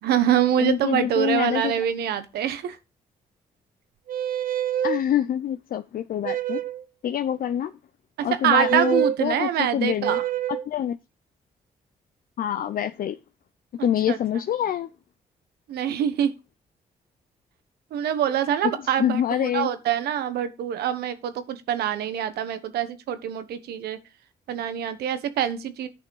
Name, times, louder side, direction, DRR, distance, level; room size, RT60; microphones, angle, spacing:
voice 1, 0.0-2.8 8.2-10.2 13.8-14.2 15.7-16.3 17.9-24.0 24.5-25.9, right 10 dB, 85° right, 1.1 m, -25 dB
voice 2, 0.6-1.7 4.8-6.6 7.0-7.7 8.2-10.2 10.5-11.0 12.4-13.2 13.8-14.9 18.6-19.7, left 10 dB, 65° left, 0.6 m, -26 dB
sound 1, 4.1-5.0 6.2-6.8 8.5-9.2 10.0-10.7, right 10 dB, 60° right, 0.7 m, -26 dB
10.5 x 5.9 x 4.7 m
supercardioid pair, 60°, 16 cm